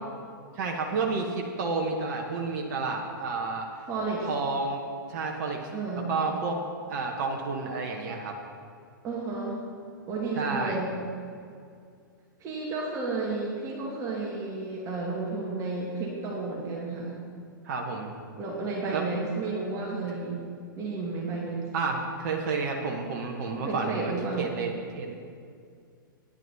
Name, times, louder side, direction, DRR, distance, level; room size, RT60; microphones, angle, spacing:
voice 1, 0.5-3.7 4.2-4.8 5.1-5.7 5.9-6.6 6.9-8.4 10.4-10.8 17.6-18.1 18.9-19.0 21.7-25.1, right 4 dB, 50° right, 1 dB, 1.2 m, -30 dB
voice 2, 3.9-4.3 5.7-6.2 9.0-9.6 10.1-10.9 12.4-17.1 18.4-20.4 20.8-21.7 23.6-24.5, right 3 dB, 30° right, -3 dB, 1.9 m, -32 dB
12.0 x 9.9 x 4.1 m, 2.3 s
figure-of-eight pair, 105°, 11 cm